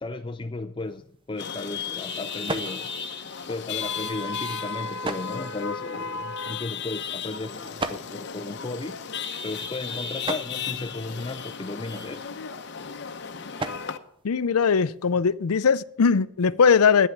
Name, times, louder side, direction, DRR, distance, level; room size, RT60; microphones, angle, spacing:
voice 1, 0.0-2.9 3.5-12.3, left 2 dB, 20° left, 0.4 m, -35 dB
sound 1, 0.8-15.2, right 2 dB, 20° right, 0.6 m, -41 dB
Chatter / Vehicle horn car horn honking / Traffic noise roadway noise, 1.4-14.0, left 6 dB, 50° left, 0.8 m, -34 dB
voice 2, 14.2-17.1, left 6 dB, 80° left, 0.5 m, -20 dB
11.5 x 9.3 x 7.3 m
head